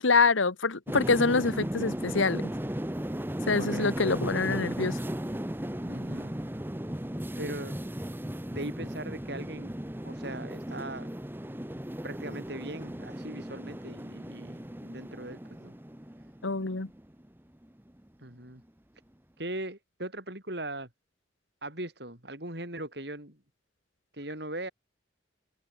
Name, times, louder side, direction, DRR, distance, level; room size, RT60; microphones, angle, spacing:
voice 1, 0.0-2.5 3.5-5.0 16.4-16.9, left 4 dB, 90° left, 1.4 m, -26 dB
sound 1, 0.9-17.3 17.6-18.0, equal, 10° right, 1.1 m, -36 dB
voice 2, 3.5-4.1 5.9-6.3 7.4-7.8 8.5-9.7 10.0-11.1 12.0-15.8 18.2-18.6 19.4-20.9 21.6-23.4 24.1-24.7, right 1 dB, 60° right, 6.4 m, -39 dB
head